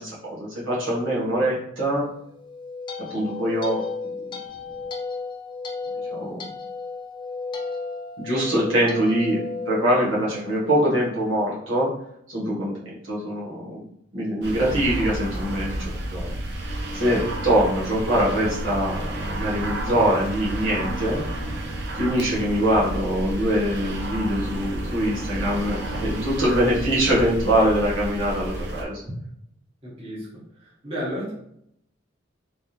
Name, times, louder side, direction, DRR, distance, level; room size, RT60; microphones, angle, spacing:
voice 1, 0.0-2.1 3.1-3.8 6.1-6.4 8.2-9.4 9.7-11.9 12.3-13.8 14.1-16.4 16.9-21.2 21.9-29.0, equal, 90° right, -6 dB, 1.4 m, -23 dB
sound 1, 2.3-10.7, left 4 dB, 25° left, 0.4 m, -34 dB
sound 2, 14.4-28.8, right 1 dB, 60° right, 0.7 m, -31 dB
voice 2, 29.8-30.3 30.5-31.3, equal, 30° right, -6 dB, 1.4 m, -32 dB
3.4 x 3.3 x 2.8 m, 0.74 s
head